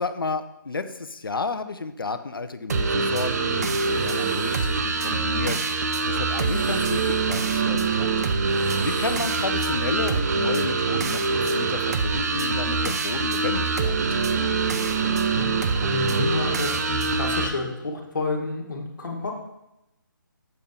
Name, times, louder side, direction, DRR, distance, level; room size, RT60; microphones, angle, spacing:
voice 1, 0.0-5.6 6.0-8.1 8.8-14.2, left 4 dB, 80° left, 10 dB, 0.6 m, -31 dB
sound 1, 2.7-17.5, right 4 dB, 50° right, 0.6 m, -24 dB
sound 2, 3.5-4.8 6.2-7.2 8.3-9.4, right 1 dB, 75° right, 2.5 m, -43 dB
voice 2, 15.3-19.3, left 3 dB, 65° left, 0 dB, 1.5 m, -30 dB
6.8 x 5.1 x 3.6 m, 0.89 s
figure-of-eight pair, 145°, 11 cm